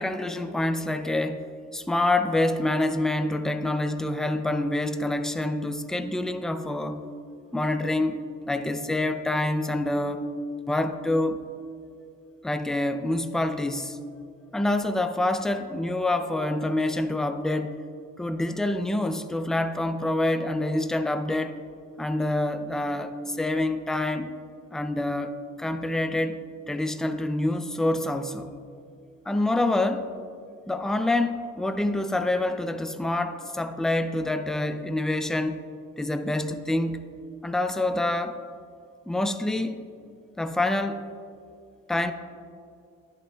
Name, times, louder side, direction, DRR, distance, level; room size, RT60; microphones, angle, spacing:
voice 1, 0.0-1.5 1.7-7.0 7.5-8.2 8.5-10.3 10.7-11.4 12.4-14.0 14.5-17.8 18.2-21.6 22.0-24.3 24.7-28.5 29.3-30.1 30.7-35.6 36.0-37.1 37.4-38.4 39.1-39.8 40.4-41.1 41.9-42.1, left 1 dB, ahead, 8 dB, 0.4 m, -26 dB
11.5 x 10.5 x 2.3 m, 2.4 s
cardioid pair, 90°, 30 cm